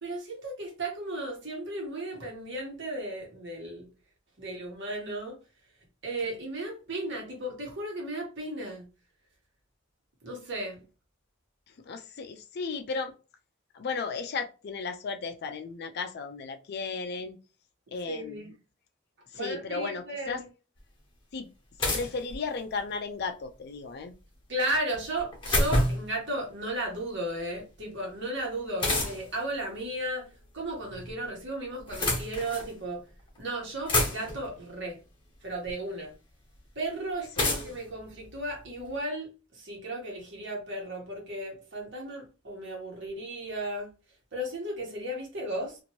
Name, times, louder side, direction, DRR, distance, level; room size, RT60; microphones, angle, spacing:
voice 1, 0.0-3.9 4.4-5.4 6.0-8.9 10.2-10.8 18.1-18.5 19.3-20.4 24.5-30.3 30.5-33.0 33.4-35.0 35.4-36.1 36.7-43.9 44.3-45.8, right 1 dB, 60° right, 1.2 m, -35 dB
voice 2, 11.9-13.1 13.7-17.4 17.9-18.4 19.3-20.4 21.3-21.5 21.9-24.1 37.4-37.5, left 4 dB, 55° left, 0.4 m, -35 dB
sound 1, 20.8-20.9 21.8-22.9 24.9-26.2 28.8-29.4 30.6-31.2 31.7-32.7 33.4-33.5 33.6-34.5 35.7-35.8 37.4-38.9, left 1 dB, 25° left, 0.9 m, -29 dB
2.9 x 2.5 x 2.9 m
head